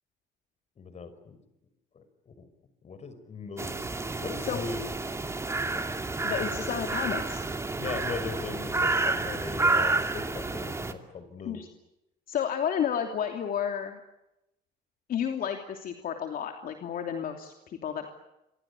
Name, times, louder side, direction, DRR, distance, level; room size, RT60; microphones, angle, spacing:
voice 1, 0.8-1.4 1.9-2.5 2.8-3.9 4.2-4.9 5.7-5.8 7.8-11.6, left 5 dB, 40° left, 12 dB, 5.5 m, -39 dB
sound 1, 3.6-10.9, right 3 dB, 15° right, 2.6 m, -30 dB
voice 2, 6.2-7.6 11.4-11.7 12.3-14.0 15.1-18.1, left 8 dB, 55° left, 4 dB, 3.0 m, -31 dB
28.5 x 24.5 x 8.4 m, 0.92 s
cardioid pair, 110°, 17 cm